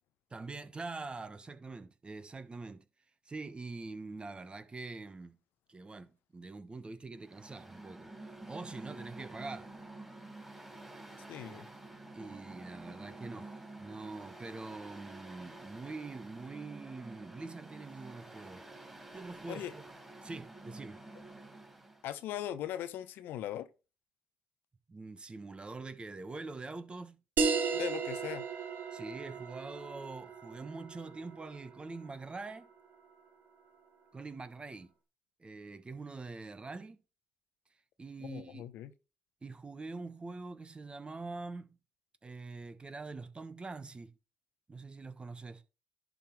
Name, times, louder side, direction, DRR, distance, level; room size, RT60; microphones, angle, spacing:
voice 1, 0.3-2.8 3.2-5.4 5.7-8.1 8.4-9.7 11.4-11.6 12.1-18.6 19.1-19.8 20.2-21.0 24.9-27.2 28.9-32.7 34.1-34.9 35.4-37.0 38.0-38.6 39.4-41.7 42.2-44.1 44.7-45.6, right 3 dB, 30° right, 1.1 m, -44 dB
Mechanical fan, 7.2-22.0, right 2 dB, 5° right, 3.3 m, -49 dB
voice 2, 11.3-11.7 19.5-19.7 22.0-23.7 27.7-28.4 38.2-38.9, left 11 dB, 70° left, 0.6 m, -39 dB
sound 1, 27.4-32.4, right 5 dB, 60° right, 1.4 m, -35 dB
11.0 x 3.8 x 4.6 m
hypercardioid pair, 50°, 4 cm